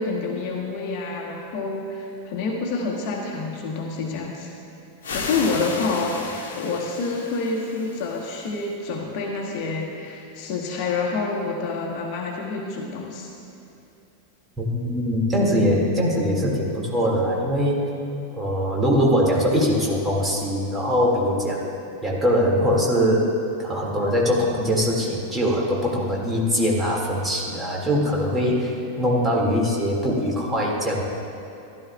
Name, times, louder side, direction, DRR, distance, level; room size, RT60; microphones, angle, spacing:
voice 1, 0.0-4.5 5.1-13.3, left 3 dB, 45° left, -1 dB, 1.3 m, -28 dB
sound 1, 5.0-8.7, left 4 dB, 60° left, 1.2 m, -34 dB
voice 2, 14.6-17.9 18.3-21.7 22.0-23.3 23.6-31.0, equal, 15° right, -3 dB, 2.1 m, -22 dB
15.0 x 11.5 x 2.3 m, 2.9 s
figure-of-eight pair, 90°, 0 cm